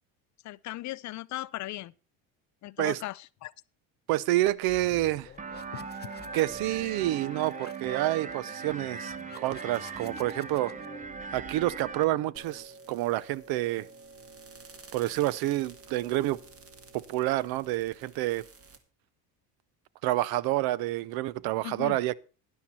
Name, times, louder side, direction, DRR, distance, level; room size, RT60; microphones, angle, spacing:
voice 1, 0.4-1.9 2.6-3.5 21.6-22.0, left 17 dB, 45° left, 0.5 m, -37 dB
voice 2, 4.1-5.3 6.3-10.7 11.3-13.9 14.9-16.4 16.9-18.4 20.0-22.2, right 16 dB, 65° right, 0.7 m, -28 dB
sound 1, 4.4-12.1, left 7 dB, 25° left, 1.0 m, -49 dB
sound 2, 5.4-12.0, right 6 dB, 20° right, 0.7 m, -39 dB
sound 3, 12.3-18.8, right 3 dB, 35° right, 1.8 m, -51 dB
12.5 x 10.5 x 4.3 m
supercardioid pair, 100°, 40 cm